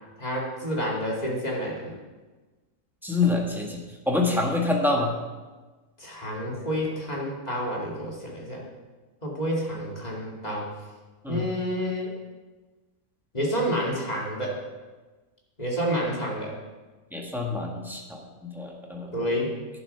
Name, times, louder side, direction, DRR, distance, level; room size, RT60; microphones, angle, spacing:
voice 1, 0.2-1.9 6.0-8.6 9.2-10.7 11.3-12.1 13.3-14.6 15.6-16.5 19.1-19.5, equal, 30° left, -3 dB, 2.4 m, -29 dB
voice 2, 3.0-5.1 11.2-11.4 17.1-19.1, left 3 dB, ahead, -1 dB, 1.5 m, -26 dB
11.0 x 7.4 x 5.7 m, 1.3 s
omnidirectional pair, 1.5 m